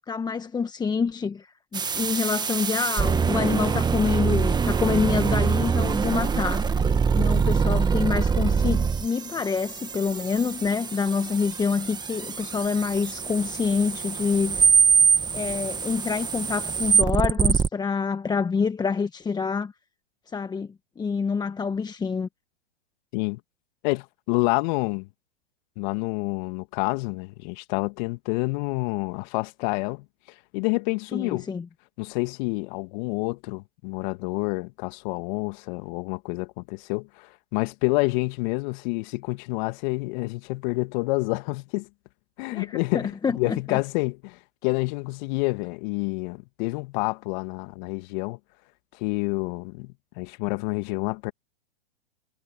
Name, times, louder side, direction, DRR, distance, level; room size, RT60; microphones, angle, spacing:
voice 1, 0.1-6.7 7.1-14.7 15.3-19.7 20.3-22.3 31.1-31.7 42.5-43.8, left 5 dB, 15° left, 1.4 m, -27 dB
sound 1, 1.7-17.7, right 5 dB, 15° right, 1.9 m, -24 dB
voice 2, 23.8-25.1 25.8-30.0 30.5-31.5 32.0-41.9 42.4-48.4 49.0-51.3, left 27 dB, 45° left, 2.4 m, -28 dB
hypercardioid pair, 115°, 31 cm